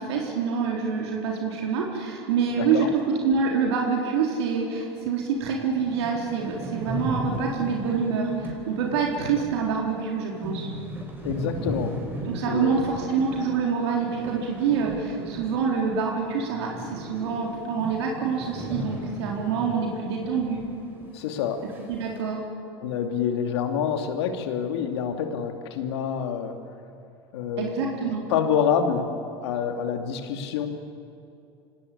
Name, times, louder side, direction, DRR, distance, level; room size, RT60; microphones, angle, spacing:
voice 1, 0.0-2.9 3.2-10.7 12.2-20.6 21.9-22.4 27.6-28.2, right 6 dB, 75° right, -1 dB, 4.0 m, -26 dB
voice 2, 2.6-2.9 9.3-9.4 11.2-12.0 12.5-12.7 21.1-21.7 22.8-26.6 27.3-27.8 28.3-29.1 29.4-30.7, left 7 dB, 75° left, 6 dB, 2.6 m, -27 dB
sound 1, 5.0-5.1 5.5-5.6 5.7-20.7 21.0-21.1 21.7-22.2, right 1 dB, 15° right, 5.2 m, -36 dB
26.0 x 19.0 x 8.7 m, 2.7 s
hypercardioid pair, 95°, 14 cm